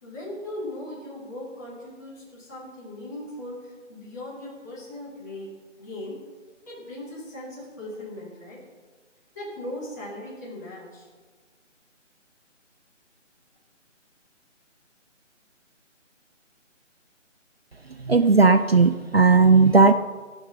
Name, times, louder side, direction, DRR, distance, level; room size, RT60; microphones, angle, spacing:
voice 1, 0.0-5.5 5.8-6.2 6.6-8.6 9.3-11.1, left 1 dB, 15° left, -9 dB, 2.8 m, -38 dB
voice 2, 18.1-19.9, right 4 dB, 55° right, 10 dB, 0.5 m, -16 dB
17.0 x 7.3 x 5.0 m, 1.4 s
figure-of-eight pair, 180°, 38 cm